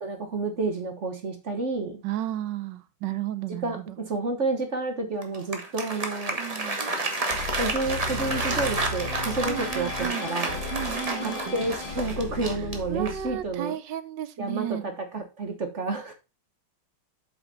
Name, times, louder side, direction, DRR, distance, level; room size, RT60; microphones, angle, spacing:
voice 1, 0.0-2.0 3.6-6.4 7.5-10.6 11.2-13.8 14.4-16.1, right 3 dB, 45° right, 1.3 m, -30 dB
voice 2, 2.0-3.8 6.4-6.8 9.4-10.2 10.7-11.4 12.9-14.9, right 12 dB, 75° right, 1.2 m, -33 dB
Applause, 5.2-13.4, right 2 dB, 20° right, 1.1 m, -31 dB
sound 1, 7.3-13.5, left 3 dB, 60° left, 3.5 m, -36 dB
8.0 x 5.5 x 4.0 m
omnidirectional pair, 2.1 m